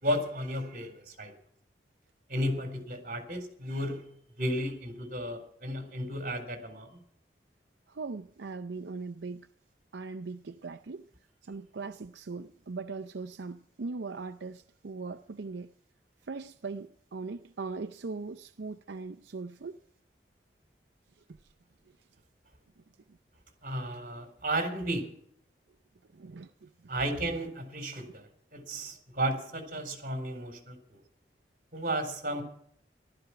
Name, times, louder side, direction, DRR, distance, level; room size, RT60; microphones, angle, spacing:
voice 1, 0.0-1.3 2.3-7.0 23.6-25.1 26.9-31.0 31.7-32.4, equal, 50° right, 3.9 m, -33 dB
voice 2, 7.9-9.5 9.9-11.1 11.4-15.7 16.2-19.8 21.3-21.4 23.1-23.2 26.1-26.9, right 4 dB, 90° right, 0.6 m, -40 dB
14.5 x 12.5 x 5.8 m
head